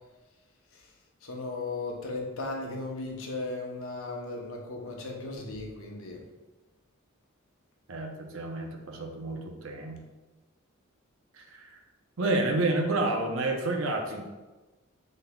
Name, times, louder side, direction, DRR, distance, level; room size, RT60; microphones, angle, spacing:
voice 1, 1.2-6.2, left 2 dB, 80° left, 0 dB, 0.8 m, -36 dB
voice 2, 7.9-10.0 11.3-11.8 12.2-14.3, right 2 dB, 75° right, 2 dB, 0.7 m, -30 dB
5.2 x 3.7 x 2.3 m, 1.2 s
head